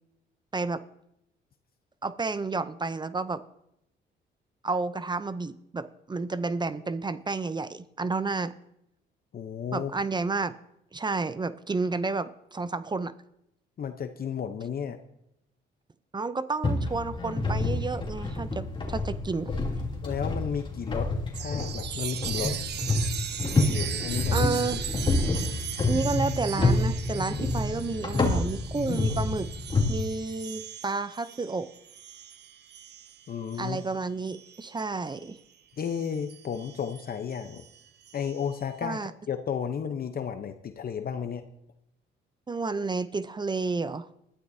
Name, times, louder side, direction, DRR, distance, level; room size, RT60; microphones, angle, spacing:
voice 1, 0.5-0.8 2.0-3.4 4.6-8.5 9.7-10.5 10.9-13.1 16.1-19.5 24.3-24.8 25.9-29.5 29.9-31.7 33.6-35.4 38.8-39.1 42.5-44.1, right 3 dB, 20° right, 14 dB, 0.5 m, -31 dB
voice 2, 9.3-9.9 13.8-15.0 20.0-22.6 23.7-24.5 33.3-33.8 35.8-37.6 38.1-39.0 39.3-41.4, left 7 dB, 50° left, 8 dB, 0.8 m, -33 dB
sound 1, 16.6-29.9, left 2 dB, 25° left, 2.8 m, -28 dB
Chime, 21.3-35.3 35.8-38.6, right 9 dB, 60° right, 0.8 m, -39 dB
20.0 x 12.5 x 2.7 m, 0.80 s
cardioid pair, 90°, 20 cm